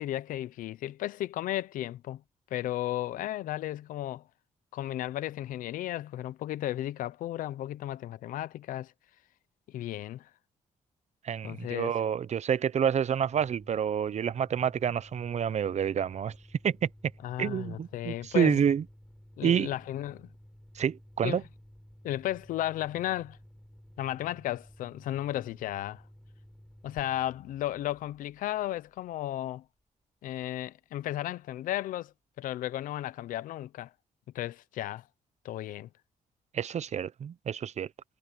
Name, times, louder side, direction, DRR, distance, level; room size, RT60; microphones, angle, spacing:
voice 1, 0.0-2.2 2.5-4.2 4.7-8.9 9.7-10.3 11.4-11.9 17.2-18.6 19.4-20.3 21.2-21.4 22.0-23.4 24.0-26.0 26.8-29.6 30.2-33.9 34.3-35.0 35.4-35.9, left 13 dB, 90° left, 0.7 m, -34 dB
voice 2, 11.2-16.3 16.6-16.9 17.4-18.8 19.4-19.7 20.7-21.4 36.5-37.9, right 8 dB, 55° right, 0.7 m, -28 dB
sound 1, 13.2-29.6, equal, 5° left, 5.5 m, -54 dB
cardioid pair, 70°, 14 cm